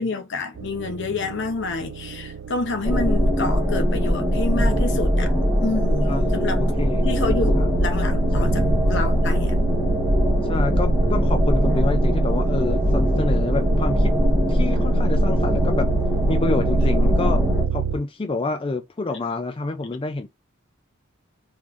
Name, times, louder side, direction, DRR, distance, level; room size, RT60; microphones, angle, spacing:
voice 1, 0.0-5.3 5.6-6.6 7.1-9.6, left 3 dB, 60° left, 0.8 m, -28 dB
sound 1, 0.6-18.0, right 6 dB, 70° right, 0.4 m, -31 dB
sound 2, 2.8-17.7, equal, 5° left, 1.1 m, -20 dB
voice 2, 6.1-6.4 6.8-7.2 7.5-7.7 8.3-8.7 10.4-14.1 14.5-15.9 16.3-17.5 17.7-20.3, left 3 dB, 25° left, 0.4 m, -28 dB
3.8 x 3.1 x 2.5 m
head